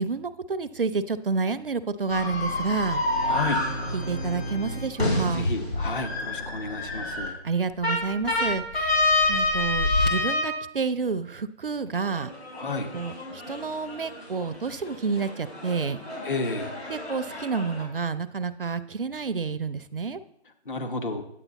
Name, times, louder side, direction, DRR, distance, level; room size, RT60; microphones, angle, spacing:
voice 1, 0.0-3.0 3.9-5.5 7.4-9.0 9.3-12.3 12.9-16.0 16.9-20.2, right 5 dB, 55° right, 14 dB, 0.5 m, -29 dB
sound 1, 2.1-7.3 7.8-10.6 12.1-17.8, left 2 dB, 65° left, 4.4 m, -28 dB
voice 2, 3.2-3.6 5.2-7.3 12.6-12.9 16.2-16.7 20.7-21.2, left 3 dB, 50° left, 6 dB, 1.2 m, -31 dB
sound 2, 7.3-10.1, left 2 dB, 20° left, 0.8 m, -32 dB
9.1 x 8.7 x 4.0 m, 0.75 s
figure-of-eight pair, 160°, 34 cm